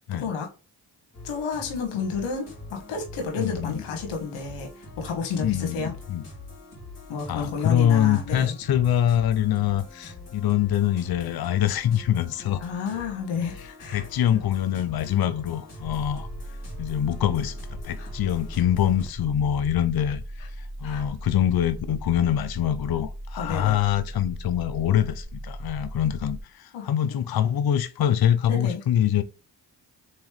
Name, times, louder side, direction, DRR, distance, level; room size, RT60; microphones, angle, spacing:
voice 1, 0.1-0.5 1.2-5.9 7.1-8.6 12.6-14.4 18.0-18.1 20.8-21.1 23.4-23.7 26.7-26.9 28.5-28.8, left 5 dB, 80° left, 1.2 m, -31 dB
sound 1, 1.1-19.1, left 2 dB, 30° left, 2.1 m, -44 dB
voice 2, 3.4-3.8 5.4-6.2 7.3-12.6 13.9-16.3 16.8-20.2 20.6-29.2, left 10 dB, 50° left, 0.6 m, -24 dB
sound 2, 15.8-26.4, right 1 dB, ahead, 0.9 m, -38 dB
3.6 x 3.1 x 3.2 m
supercardioid pair, 45°, 49 cm